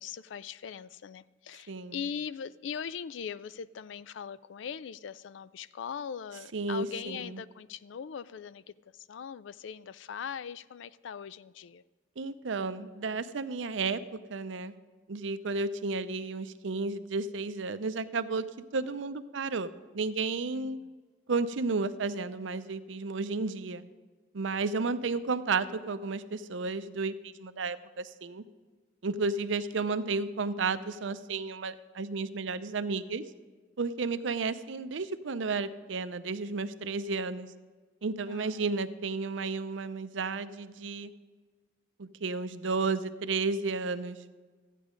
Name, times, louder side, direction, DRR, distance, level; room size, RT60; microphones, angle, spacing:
voice 1, 0.0-11.8 20.5-20.9 38.3-38.7, left 7 dB, 75° left, 18 dB, 0.4 m, -41 dB
voice 2, 6.5-7.4 12.2-14.0 14.3-14.7 15.1-18.5 18.7-20.8 21.3-23.8 24.3-28.4 29.0-33.2 33.8-37.5 38.0-41.1 42.0-44.2, right 4 dB, 80° right, 12 dB, 0.6 m, -32 dB
13.5 x 9.2 x 5.1 m, 1.4 s
head